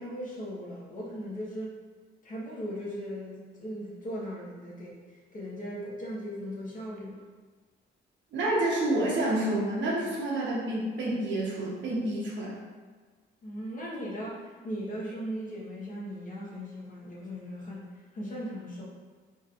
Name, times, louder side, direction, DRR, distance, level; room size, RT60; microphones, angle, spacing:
voice 1, 0.0-1.8 2.2-7.2 13.4-17.9 18.1-18.9, equal, 40° left, -5 dB, 1.1 m, -38 dB
voice 2, 8.3-12.5, right 1 dB, 65° right, -4 dB, 1.0 m, -28 dB
4.1 x 3.2 x 2.4 m, 1.5 s
cardioid pair, 90°, 20 cm